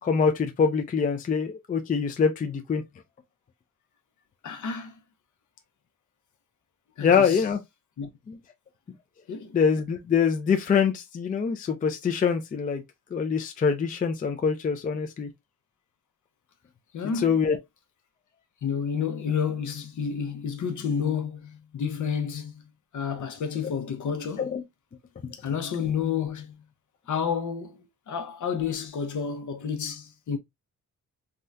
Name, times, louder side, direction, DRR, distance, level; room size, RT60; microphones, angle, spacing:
voice 1, 0.0-2.8 7.0-7.6 8.3-8.4 9.5-12.8 13.1-15.3 17.2-17.6 24.4-24.6 25.2-25.3, left 6 dB, 25° left, 0.3 m, -24 dB
voice 2, 4.4-5.0 7.0-7.4 8.0-8.1 9.3-9.6 16.9-17.4 18.6-24.5 25.3-26.6 27.1-27.8 28.1-30.4, left 7 dB, 60° left, 0.7 m, -30 dB
3.5 x 2.2 x 2.5 m
wide cardioid pair, 145°, 34 cm